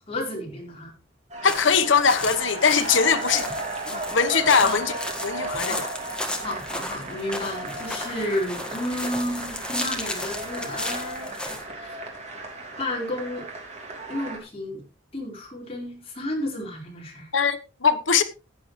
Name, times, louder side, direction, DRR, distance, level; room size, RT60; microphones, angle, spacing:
voice 1, 0.1-0.9 4.6-4.8 5.6-5.8 6.4-12.0 12.8-13.5 14.1-14.8 15.1-17.3, left 1 dB, 30° left, 4.4 m, -32 dB
sound 1, 1.3-14.4, right 2 dB, 35° right, 3.3 m, -35 dB
voice 2, 1.4-3.5 3.9-4.9 5.2-5.9 17.3-18.2, left 6 dB, 75° left, 1.1 m, -21 dB
sound 2, 1.4-11.6, left 1 dB, 5° left, 1.6 m, -34 dB
15.0 x 9.5 x 3.2 m
head